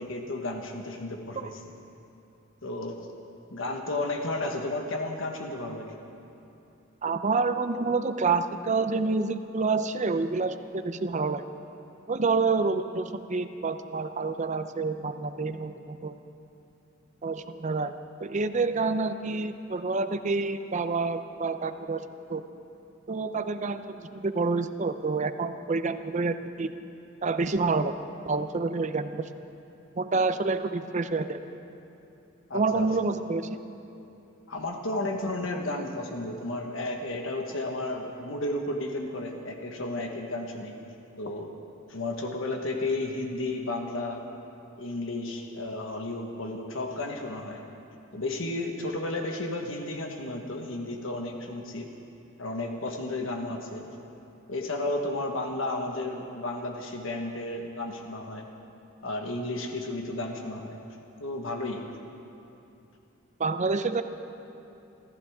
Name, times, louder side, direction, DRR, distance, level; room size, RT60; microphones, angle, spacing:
voice 1, 0.0-1.6 2.6-3.1 3.5-6.0 32.5-32.9 34.5-40.7 41.2-41.6 41.9-44.2 44.8-47.6 48.1-51.9 52.4-53.9 54.5-58.5 59.0-60.8 61.2-61.8, left 2 dB, 75° left, 2 dB, 1.3 m, -33 dB
voice 2, 7.0-11.4 12.1-16.1 17.2-17.9 18.2-22.4 23.1-26.7 27.2-28.0 28.2-29.3 30.0-31.4 32.5-33.5 63.4-64.0, right 4 dB, 35° right, 10 dB, 0.6 m, -28 dB
26.5 x 14.5 x 3.6 m, 2.8 s
head